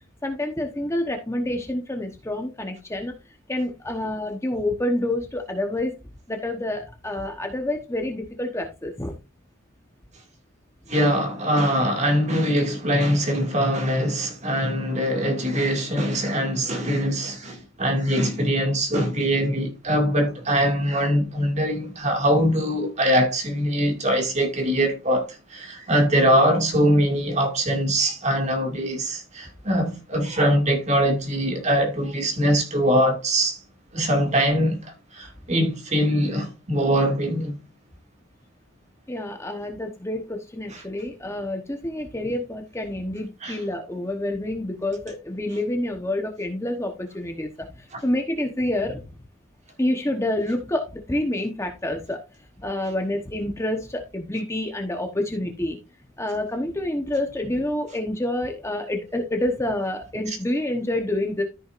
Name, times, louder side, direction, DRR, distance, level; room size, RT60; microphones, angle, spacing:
voice 1, 0.2-3.1 3.5-6.0 6.3-9.2 39.1-49.2 49.8-52.2 52.6-55.8 56.2-61.4, left 1 dB, 15° left, 1.0 m, -28 dB
voice 2, 10.9-33.6 33.9-37.5 40.7-40.8 43.4-43.6 47.9-48.0 60.3-60.4, equal, 35° right, 2.2 m, -22 dB
13.5 x 6.0 x 2.5 m
head